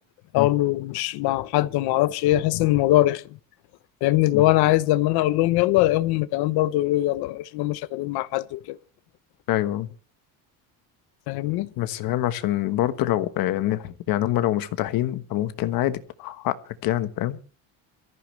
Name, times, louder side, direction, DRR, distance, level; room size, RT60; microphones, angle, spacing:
voice 1, 0.3-3.2 4.0-8.8 11.3-11.7, left 16 dB, 90° left, 1.0 m, -22 dB
voice 2, 9.5-9.9 11.8-17.4, left 14 dB, 65° left, 1.3 m, -25 dB
22.5 x 14.5 x 3.2 m
cardioid pair, 165°, 37 cm